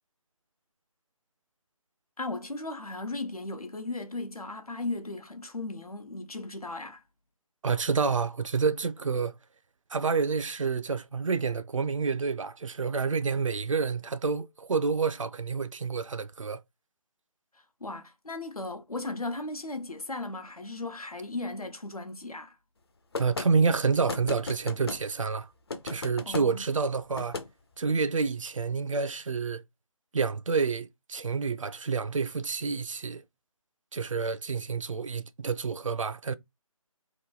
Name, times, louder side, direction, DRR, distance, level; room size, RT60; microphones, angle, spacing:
voice 1, 2.2-7.0 17.8-22.5 26.3-26.6, left 2 dB, 90° left, 0.9 m, -36 dB
voice 2, 7.6-9.4 9.9-16.6 23.2-25.5 25.8-27.4 27.8-29.6 30.1-33.2 33.9-36.3, right 5 dB, 60° right, 0.4 m, -28 dB
sound 1, 23.1-23.5 24.1-25.0 25.7-26.5 27.1-27.5, left 3 dB, 45° left, 0.5 m, -35 dB
3.0 x 2.5 x 3.7 m
figure-of-eight pair, 150°, 18 cm